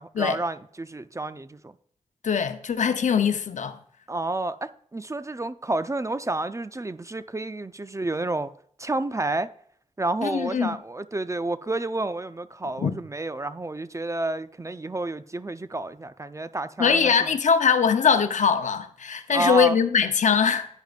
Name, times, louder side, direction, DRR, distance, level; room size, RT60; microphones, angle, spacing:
voice 1, 0.0-1.7 4.1-8.5 8.8-9.5 10.0-17.3 19.3-19.8, right 2 dB, 25° right, 0.5 m, -30 dB
voice 2, 2.2-3.8 10.2-10.8 12.8-13.0 16.8-20.7, left 6 dB, 80° left, 0.7 m, -22 dB
10.5 x 9.1 x 2.5 m
cardioid pair, 45°, 12 cm